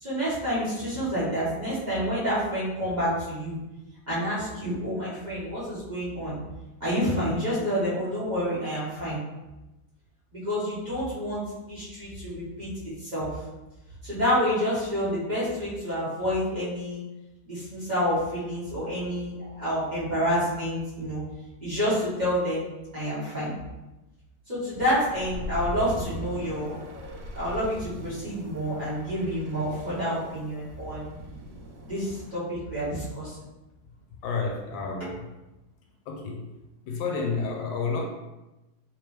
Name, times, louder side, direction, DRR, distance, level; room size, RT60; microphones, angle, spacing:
voice 1, 0.0-3.6 4.1-6.4 6.8-9.2 10.3-12.7 13.0-13.4 14.0-17.0 17.4-21.2 21.6-22.7 22.9-23.5 24.5-31.1 31.8-33.4 35.0-35.1, equal, 25° right, -12 dB, 1.5 m, -28 dB
sound 1, 24.8-32.3, equal, 75° right, 1.1 m, -40 dB
voice 2, 34.2-35.2 36.1-36.5 36.8-38.0, left 4 dB, 80° left, 1 dB, 1.3 m, -30 dB
3.6 x 3.0 x 3.2 m, 1.0 s
omnidirectional pair, 2.2 m